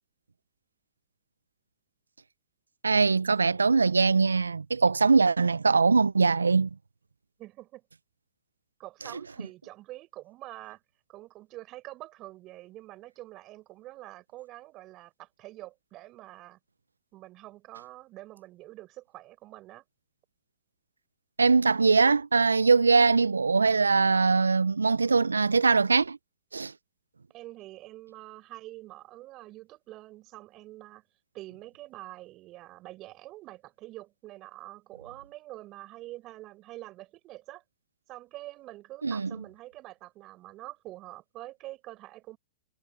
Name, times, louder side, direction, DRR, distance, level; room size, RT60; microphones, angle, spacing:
voice 1, 2.8-6.7 21.4-26.2 26.5-26.7 39.0-39.3, right 4 dB, 90° right, 0.6 m, -22 dB
voice 2, 7.4-7.8 8.8-10.8 11.1-16.6 17.1-19.8 27.3-31.0 31.3-37.6 38.1-42.4, right 17 dB, 40° right, 5.3 m, -46 dB
hypercardioid pair, 105°, 0 cm